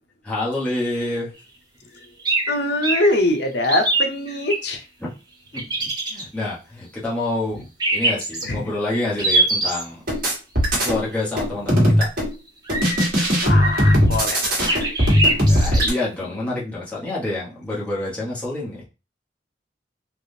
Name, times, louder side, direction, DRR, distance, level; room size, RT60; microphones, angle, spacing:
voice 1, 0.2-1.3 5.0-5.1 5.5-5.7 6.1-7.6 7.9-10.0 10.8-12.1 15.5-18.8, left 2 dB, 10° left, -7 dB, 1.1 m, -27 dB
sound 1, 2.2-2.5 2.8-3.1 3.6-4.6 5.5-6.2 7.8-8.4 9.2-9.8 12.6-13.0 13.5-14.1 14.7-15.9, right 2 dB, 25° right, 0.8 m, -22 dB
voice 2, 2.5-4.8 8.4-8.6 11.6-11.8 13.4-14.9 15.3-15.4, left 1 dB, 70° left, 5 dB, 0.6 m, -23 dB
sound 2, 10.1-11.0 11.4-12.3 12.7-15.9, equal, 55° right, 1.4 m, -18 dB
3.4 x 2.4 x 2.7 m, 0.31 s
head